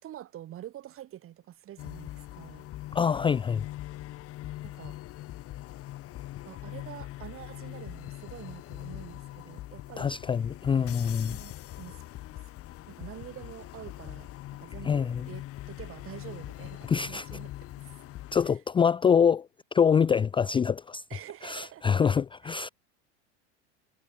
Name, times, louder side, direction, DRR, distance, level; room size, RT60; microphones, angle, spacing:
voice 1, 0.0-2.7 4.6-5.0 6.4-10.2 10.7-12.0 12.9-14.3 14.6-17.9 21.1-21.8 22.4-22.6, right 12 dB, 40° right, 5.1 m, -46 dB
sound 1, 1.8-18.5, left 15 dB, 40° left, 2.1 m, -42 dB
voice 2, 2.9-3.7 10.0-11.4 14.8-15.3 16.9-17.3 18.3-21.0 21.4-22.7, left 7 dB, 15° left, 0.5 m, -25 dB
supercardioid pair, 120°, 34 cm